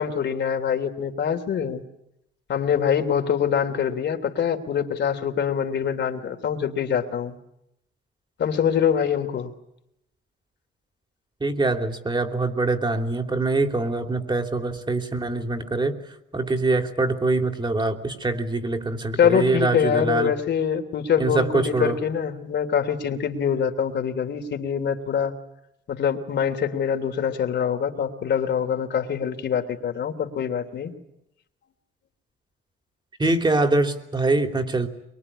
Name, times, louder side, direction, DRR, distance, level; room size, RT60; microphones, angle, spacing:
voice 1, 0.0-1.8 2.5-7.4 8.4-9.5 19.2-25.3 25.9-30.9, left 8 dB, 60° left, 5 dB, 3.1 m, -24 dB
voice 2, 11.4-16.0 16.3-20.3 21.2-22.0 33.2-34.9, right 2 dB, 25° right, 6 dB, 3.3 m, -24 dB
23.5 x 23.0 x 9.9 m, 0.81 s
cardioid pair, 90°, 20 cm